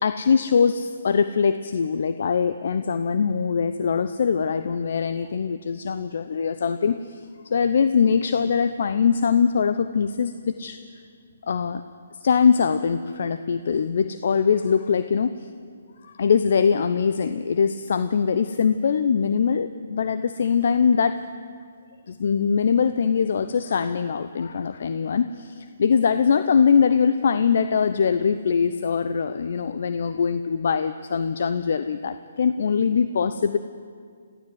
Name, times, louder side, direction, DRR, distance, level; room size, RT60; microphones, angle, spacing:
voice 1, 0.0-10.8 11.5-11.8 12.2-15.3 16.0-21.2 22.1-33.6, left 6 dB, 60° left, 11 dB, 0.8 m, -22 dB
22.0 x 15.5 x 8.0 m, 2.1 s
hypercardioid pair, 140°, 0 cm